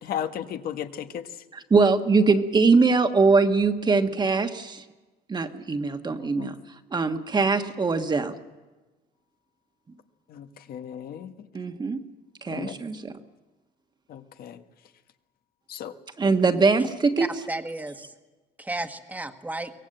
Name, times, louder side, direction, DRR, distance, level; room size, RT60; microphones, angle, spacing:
voice 1, 0.0-1.3 6.2-6.5 10.3-11.3 12.5-12.7 14.1-14.6 15.7-15.9, left 9 dB, 60° left, 8 dB, 1.3 m, -35 dB
voice 2, 1.5-4.8 5.3-6.5 6.9-8.3 11.5-12.0 12.4-13.1 16.2-17.3, right 4 dB, 25° right, 7 dB, 1.4 m, -22 dB
voice 3, 17.2-18.1 18.6-19.7, right 2 dB, 10° right, 8 dB, 1.4 m, -33 dB
23.5 x 17.5 x 7.9 m, 1.2 s
cardioid pair, 110°, 17 cm